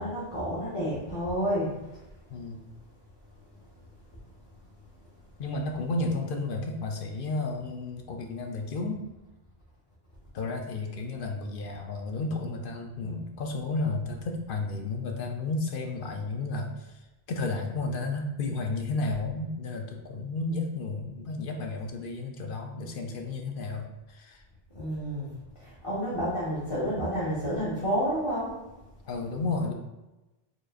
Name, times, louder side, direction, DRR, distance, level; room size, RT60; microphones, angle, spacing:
voice 1, 0.0-1.7 24.7-25.3 25.8-28.5, equal, 30° left, -10 dB, 1.0 m, -29 dB
voice 2, 2.3-2.6 5.4-9.1 10.3-17.0 17.3-24.4 29.0-29.7, left 3 dB, 60° left, 2 dB, 0.7 m, -32 dB
4.6 x 3.1 x 2.4 m, 1.0 s
omnidirectional pair, 1.0 m